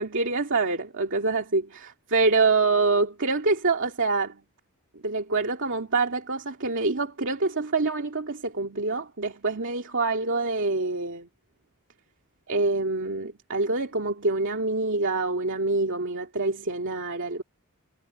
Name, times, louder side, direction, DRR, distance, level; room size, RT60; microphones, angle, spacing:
voice 1, 0.0-4.4 5.0-11.3 12.5-17.4, right 3 dB, 60° right, 2.4 m, -26 dB
head